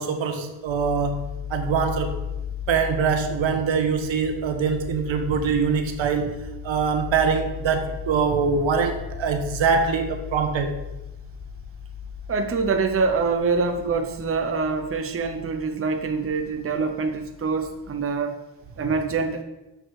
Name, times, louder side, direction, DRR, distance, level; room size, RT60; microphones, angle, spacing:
voice 1, 0.0-2.1 2.7-6.4 6.6-10.7 18.8-18.9, right 5 dB, 80° right, 6 dB, 1.5 m, -23 dB
sound 1, 0.7-18.1, left 7 dB, 5° left, 1.9 m, -37 dB
voice 2, 12.3-18.4 18.8-19.4, right 4 dB, 30° right, 5 dB, 0.8 m, -25 dB
12.5 x 6.7 x 4.8 m, 1.0 s
wide cardioid pair, 150°, 45 cm